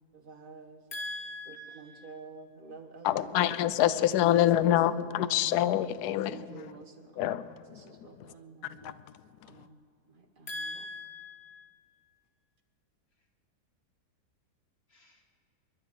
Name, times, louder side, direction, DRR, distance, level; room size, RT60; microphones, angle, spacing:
voice 1, 0.2-0.8 1.8-3.5 4.9-5.3 6.2-7.3 7.7-9.0 9.5-9.8 10.1-10.5, right 4 dB, 35° right, 1.3 m, -49 dB
voice 2, 0.9-2.2 10.5-11.8 14.9-15.2, left 1 dB, 35° left, 2.1 m, -41 dB
voice 3, 3.0-6.8 7.2-7.5 8.8-8.9, left 12 dB, 75° left, 1.1 m, -26 dB
29.5 x 11.5 x 3.7 m
omnidirectional pair, 1.8 m